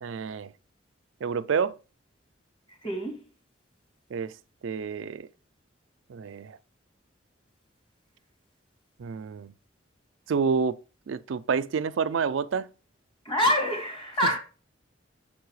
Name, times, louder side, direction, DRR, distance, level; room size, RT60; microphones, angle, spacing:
voice 1, 0.0-0.5 1.2-1.8 4.1-4.3 4.6-5.3 6.1-6.6 9.0-9.5 10.3-10.8 11.1-12.7, right 5 dB, 85° right, 0.4 m, -28 dB
voice 2, 2.8-3.2 13.2-14.4, equal, 25° left, 2.6 m, -26 dB
7.3 x 4.7 x 4.7 m
head